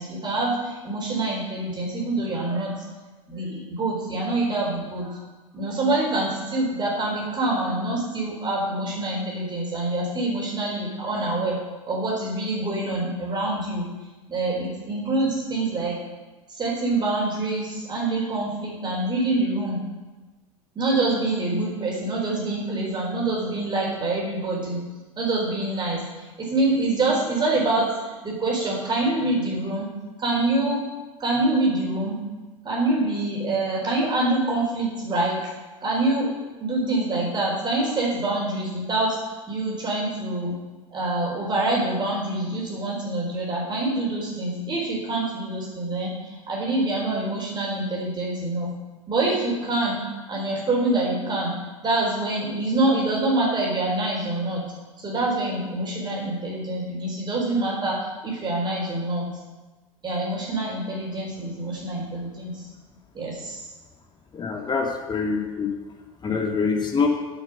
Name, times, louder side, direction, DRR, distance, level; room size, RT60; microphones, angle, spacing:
voice 1, 0.0-2.9 3.3-5.2 5.5-11.6 11.9-13.9 14.3-16.0 16.5-19.8 20.7-24.8 25.2-29.9 30.2-30.8 31.2-32.2 32.6-35.4 35.8-36.3 36.6-40.6 40.9-48.7 49.1-50.0 50.3-54.6 55.0-59.3 60.0-62.7 63.1-63.7, right 2 dB, 25° right, -3 dB, 4.2 m, -25 dB
voice 2, 64.3-65.7 66.2-67.1, left 5 dB, 25° left, 2 dB, 2.0 m, -25 dB
9.5 x 7.7 x 6.8 m, 1.2 s
hypercardioid pair, 80°, 17 cm